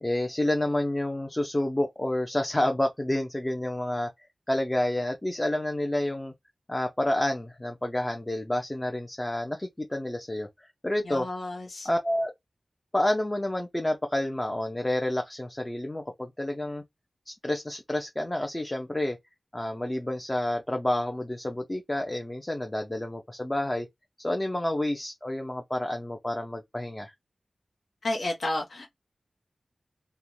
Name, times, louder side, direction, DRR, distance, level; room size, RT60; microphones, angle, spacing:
voice 1, 0.0-4.1 4.5-6.3 6.7-10.5 10.8-11.3 11.8-12.3 12.9-16.8 17.3-19.2 19.5-23.9 24.2-27.1, left 1 dB, 20° left, 0.5 m, -29 dB
voice 2, 11.0-11.9 28.0-28.9, left 1 dB, 70° left, 0.7 m, -31 dB
2.4 x 2.1 x 3.0 m
wide cardioid pair, 85°, 0 cm